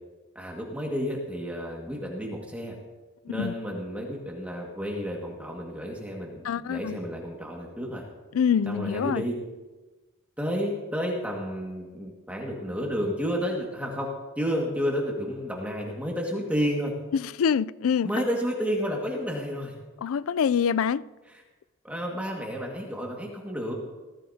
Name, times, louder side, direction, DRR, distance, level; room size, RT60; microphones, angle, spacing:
voice 1, 0.4-2.8 3.3-8.0 8.7-9.4 10.4-14.1 14.4-16.9 18.0-19.7 21.8-23.7, equal, 5° right, 1.8 m, -31 dB
voice 2, 6.4-7.0 8.3-9.2 17.1-18.1 20.0-21.0, left 7 dB, 75° left, 0.3 m, -25 dB
19.0 x 14.0 x 2.8 m
head